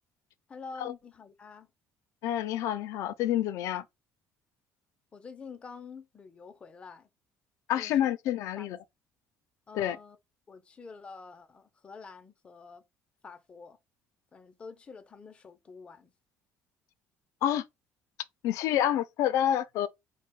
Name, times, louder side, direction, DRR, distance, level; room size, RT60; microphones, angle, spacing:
voice 1, 0.5-1.7 5.1-7.1 7.7-7.9 8.6-8.7 9.7-10.2 10.5-12.8 13.2-13.8 14.3-16.1, left 4 dB, 20° left, 0.5 m, -47 dB
voice 2, 2.2-3.9 7.7-8.8 9.7-10.0 17.4-17.6 18.4-19.9, left 11 dB, 70° left, 0.5 m, -28 dB
4.7 x 2.2 x 4.4 m
cardioid pair, 175°, 6 cm